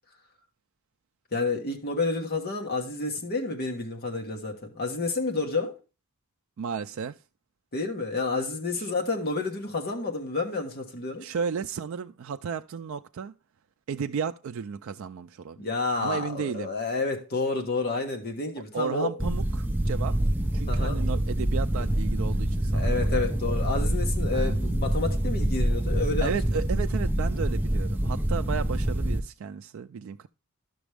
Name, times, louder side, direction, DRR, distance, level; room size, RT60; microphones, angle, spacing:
voice 1, 1.3-5.8 7.7-11.3 15.6-19.1 20.7-21.1 22.7-26.6, left 3 dB, 45° left, 1.3 m, -30 dB
voice 2, 6.6-7.2 8.8-8.9 11.2-13.3 13.9-15.6 16.0-16.7 18.7-20.2 20.5-23.3 24.3-24.6 26.2-30.3, right 6 dB, 65° right, 0.3 m, -33 dB
sound 1, 19.2-29.2, right 1 dB, 10° right, 0.5 m, -26 dB
11.0 x 6.1 x 3.3 m
head